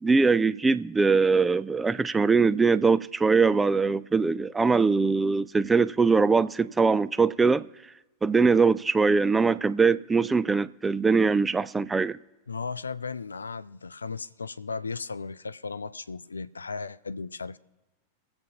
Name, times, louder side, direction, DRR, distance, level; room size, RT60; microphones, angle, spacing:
voice 1, 0.0-7.7 8.2-12.2, right 4 dB, 10° right, 0.3 m, -22 dB
voice 2, 12.5-17.6, left 4 dB, 75° left, 0.4 m, -36 dB
23.5 x 7.8 x 2.9 m
figure-of-eight pair, 90°, 0 cm